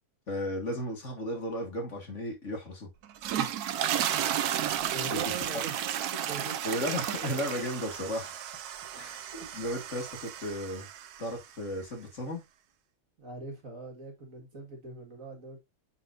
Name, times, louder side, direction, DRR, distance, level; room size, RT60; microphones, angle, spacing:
voice 1, 0.3-2.9 5.1-5.2 5.5-5.6 6.6-8.6 8.9-10.9 11.2-12.4, equal, 40° left, 2.0 m, -35 dB
sound 1, 3.0-11.4, right 10 dB, 65° right, 1.1 m, -33 dB
voice 2, 4.9-5.7 6.1-6.8 9.3-9.5 13.2-15.6, right 3 dB, 45° right, 2.0 m, -41 dB
9.1 x 4.5 x 2.5 m
omnidirectional pair, 2.0 m